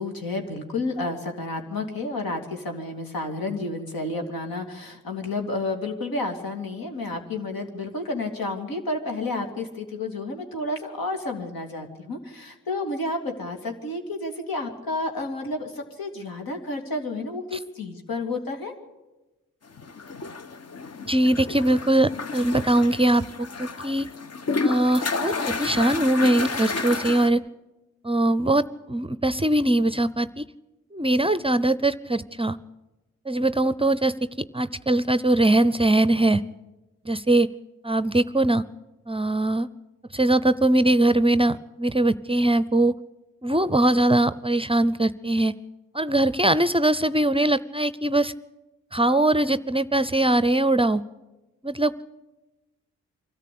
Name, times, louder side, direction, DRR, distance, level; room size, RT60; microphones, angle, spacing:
voice 1, 0.0-18.7 22.5-22.6, left 2 dB, 75° left, 4 dB, 2.8 m, -31 dB
sound 1, 19.8-27.3, left 4 dB, 45° left, 1.1 m, -31 dB
voice 2, 21.0-23.2 23.6-24.1 24.6-27.4 28.0-30.4 30.9-32.6 33.3-34.1 34.5-36.4 37.1-37.5 37.8-38.6 39.1-39.7 40.1-42.9 43.4-45.5 45.9-48.3 48.9-51.0 51.6-52.0, right 1 dB, 15° right, 16 dB, 0.6 m, -21 dB
24.0 x 13.5 x 8.5 m, 1.1 s
supercardioid pair, 50°, 36 cm